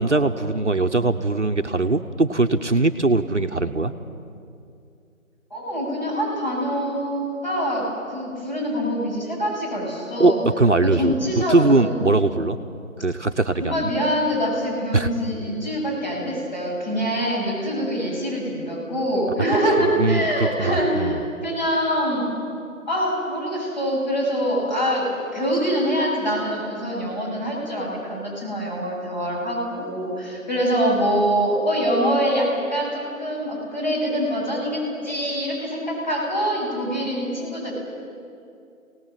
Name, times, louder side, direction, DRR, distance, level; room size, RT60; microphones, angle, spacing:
voice 1, 0.0-3.9 10.2-12.6 13.0-13.9 14.9-15.1 19.8-21.2, right 2 dB, 55° right, 7 dB, 1.0 m, -21 dB
voice 2, 5.5-10.4 10.8-12.0 13.6-21.2 21.4-22.3 22.9-37.7, equal, 30° left, -4 dB, 7.4 m, -24 dB
26.5 x 18.5 x 7.7 m, 2.5 s
figure-of-eight pair, 165°, 42 cm